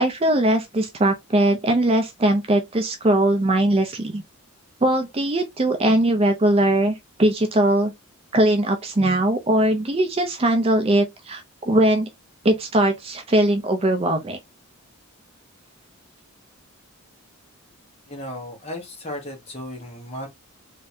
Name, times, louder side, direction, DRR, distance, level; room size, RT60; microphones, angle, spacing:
voice 1, 0.0-4.2 4.8-7.9 8.3-12.1 12.4-14.4, right 1 dB, 25° right, 0.5 m, -20 dB
voice 2, 18.1-20.3, left 1 dB, 30° left, 1.2 m, -35 dB
3.3 x 3.0 x 2.7 m
head